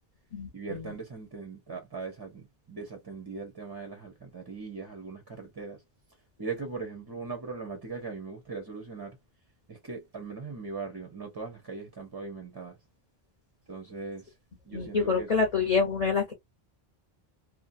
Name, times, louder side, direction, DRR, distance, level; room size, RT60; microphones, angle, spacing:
voice 1, 0.5-5.8 6.4-9.2 9.7-12.8 13.7-14.3 14.6-15.3, right 4 dB, 30° right, 0.5 m, -39 dB
voice 2, 14.7-16.3, left 5 dB, 40° left, 0.8 m, -26 dB
2.7 x 2.2 x 2.4 m
omnidirectional pair, 1.0 m